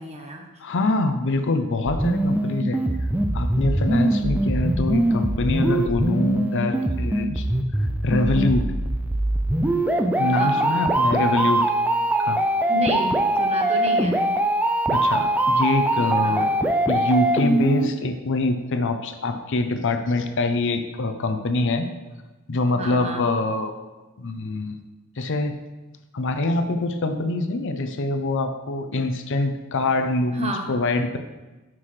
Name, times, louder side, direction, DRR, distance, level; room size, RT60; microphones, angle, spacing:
voice 1, 0.0-0.5 10.3-10.7 12.7-14.2 16.2-16.5 22.7-23.3 30.4-30.7, right 1 dB, 30° right, 2 dB, 1.0 m, -31 dB
voice 2, 0.6-2.8 3.3-7.5 8.0-8.6 10.2-11.6 12.2-12.4 14.9-16.5 16.9-21.9 22.5-23.7 24.2-24.8 25.2-25.5 26.1-31.2, left 2 dB, 60° left, 7 dB, 0.6 m, -24 dB
sound 1, 1.9-17.9, right 1 dB, 5° right, 0.4 m, -22 dB
9.5 x 6.1 x 3.2 m, 1.1 s
head